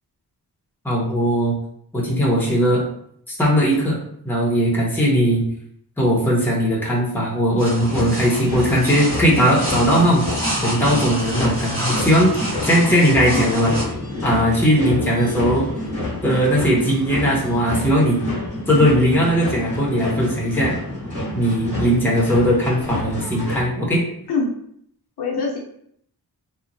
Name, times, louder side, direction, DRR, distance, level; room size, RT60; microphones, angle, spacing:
voice 1, 0.8-1.5 1.9-2.8 3.3-4.0 4.2-5.4 6.0-10.3 10.6-13.7 14.2-15.7 16.2-18.2 18.7-20.7 21.3-24.0, equal, 5° left, -4 dB, 0.7 m, -18 dB
sound 1, 7.6-23.6, left 1 dB, 20° right, 1.3 m, -28 dB
sound 2, 7.6-13.8, equal, 55° right, 1.4 m, -29 dB
voice 2, 25.2-25.6, left 3 dB, 75° left, -1 dB, 0.7 m, -23 dB
2.9 x 2.1 x 2.5 m, 0.68 s
wide cardioid pair, 115°, 40 cm